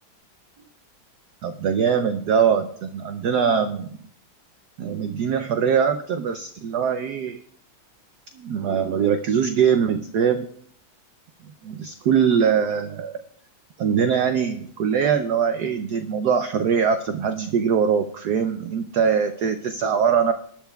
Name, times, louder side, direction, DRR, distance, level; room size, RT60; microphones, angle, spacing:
voice 1, 1.4-4.1 4.8-7.4 8.4-10.5 11.6-13.2 13.8-20.3, right 7 dB, 70° right, 8 dB, 0.9 m, -22 dB
20.5 x 10.5 x 2.3 m, 0.62 s
omnidirectional pair, 2.3 m